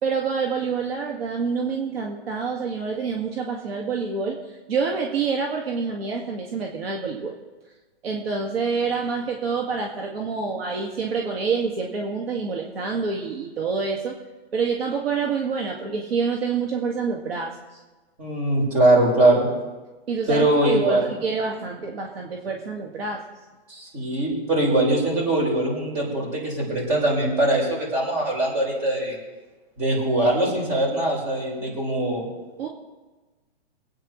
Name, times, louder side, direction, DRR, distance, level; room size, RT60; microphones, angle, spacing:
voice 1, 0.0-4.4 4.7-7.3 8.0-14.2 14.5-17.5 20.1-23.2 32.6-32.7, right 5 dB, 65° right, 0 dB, 2.0 m, -27 dB
voice 2, 18.2-19.5 20.3-21.1 23.7-29.2 29.8-32.2, right 1 dB, 25° right, -3 dB, 5.2 m, -22 dB
24.0 x 9.1 x 3.2 m, 1.2 s
hypercardioid pair, 165°, 32 cm